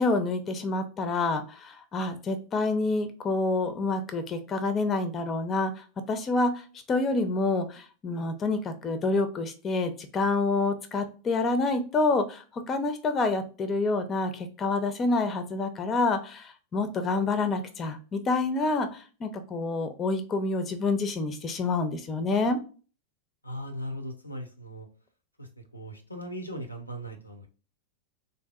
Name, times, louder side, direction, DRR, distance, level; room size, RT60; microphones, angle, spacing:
voice 1, 0.0-6.6 6.9-22.6, left 3 dB, 25° left, 8 dB, 0.5 m, -28 dB
voice 2, 23.4-24.9 25.4-27.5, equal, 85° left, 6 dB, 0.6 m, -38 dB
3.4 x 2.6 x 2.2 m, 0.36 s
figure-of-eight pair, 90°, 0 cm